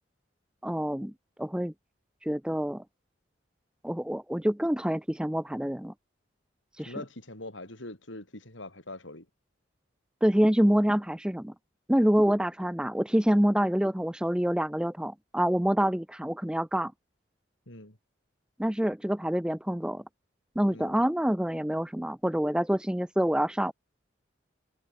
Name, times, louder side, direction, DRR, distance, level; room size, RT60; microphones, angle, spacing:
voice 1, 0.6-1.1 1.4-1.7 2.2-2.8 3.8-5.9 6.8-6.9 10.2-11.5 11.9-16.9 18.6-20.0 20.6-23.7, equal, 5° right, 0.5 m, -26 dB
voice 2, 6.9-9.3 17.7-18.0 20.7-21.0, left 2 dB, 80° left, 7.3 m, -43 dB
head